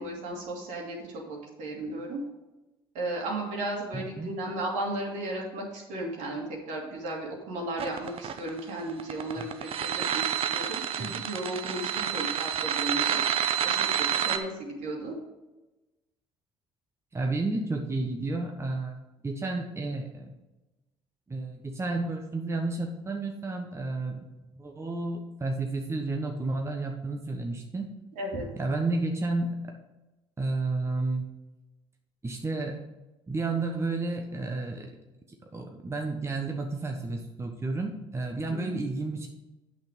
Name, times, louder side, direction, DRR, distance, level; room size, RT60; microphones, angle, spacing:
voice 1, 0.0-2.2 2.9-13.2 13.6-15.1 28.2-28.5 38.5-38.8, right 1 dB, 65° right, -1 dB, 2.7 m, -35 dB
voice 2, 3.9-4.3 9.4-9.5 11.0-11.2 17.1-20.3 21.3-27.9 28.6-29.7 30.4-31.4 32.2-32.8 33.3-35.0 35.3-39.3, right 3 dB, 20° right, 2 dB, 1.2 m, -31 dB
sound 1, 7.8-14.4, right 9 dB, 45° right, 0.8 m, -29 dB
8.6 x 6.1 x 5.2 m, 1.0 s
hypercardioid pair, 60°, 13 cm